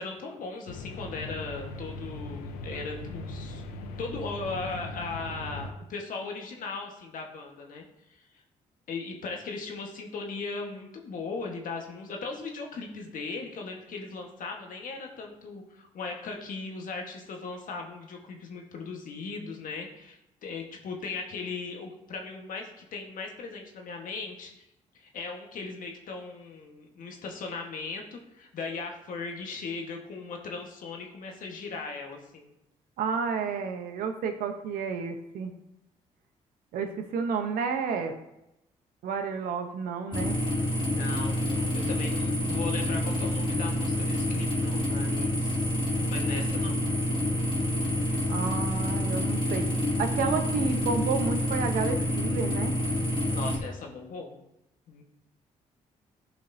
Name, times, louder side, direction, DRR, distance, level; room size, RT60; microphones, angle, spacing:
voice 1, 0.0-3.6 4.0-8.2 8.9-24.5 24.9-32.5 40.9-45.7 46.1-46.9 53.3-54.3 54.9-55.0, left 4 dB, 65° left, 2 dB, 1.4 m, -38 dB
sound 1, 0.7-5.7, left 1 dB, 90° left, 0.6 m, -39 dB
voice 2, 33.0-35.5 36.7-38.1 39.0-40.4 48.3-49.6 50.0-52.7, right 5 dB, 80° right, 6 dB, 0.9 m, -31 dB
sound 2, 40.1-53.6, left 1 dB, 35° left, 2.3 m, -28 dB
11.0 x 5.2 x 2.7 m, 0.87 s
supercardioid pair, 60°, 15 cm